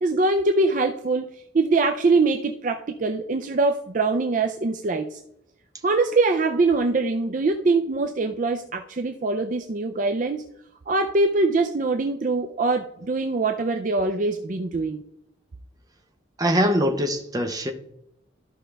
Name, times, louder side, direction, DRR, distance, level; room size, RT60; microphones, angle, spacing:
voice 1, 0.0-5.2 5.8-10.4 10.9-15.0, right 3 dB, 40° right, 5 dB, 0.4 m, -23 dB
voice 2, 16.4-17.7, equal, 20° right, 4 dB, 0.9 m, -22 dB
13.5 x 5.1 x 3.4 m, 0.79 s
head